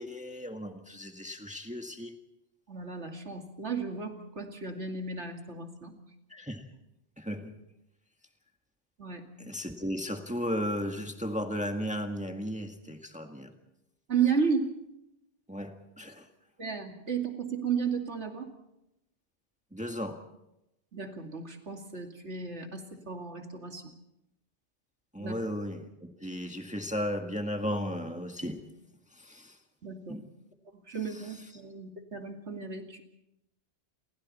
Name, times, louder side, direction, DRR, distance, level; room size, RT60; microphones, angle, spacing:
voice 1, 0.0-2.1 6.3-6.7 7.2-7.6 9.4-13.5 15.5-16.3 19.7-20.2 25.1-28.6 29.1-29.6 30.1-30.3, equal, 5° right, 4 dB, 1.7 m, -35 dB
voice 2, 2.7-5.9 9.0-9.2 14.1-14.7 16.6-18.5 20.9-23.9 25.2-25.3 29.8-30.2 30.7-33.0, right 6 dB, 75° right, 3 dB, 2.7 m, -33 dB
30.0 x 23.5 x 4.2 m, 0.87 s
omnidirectional pair, 1.2 m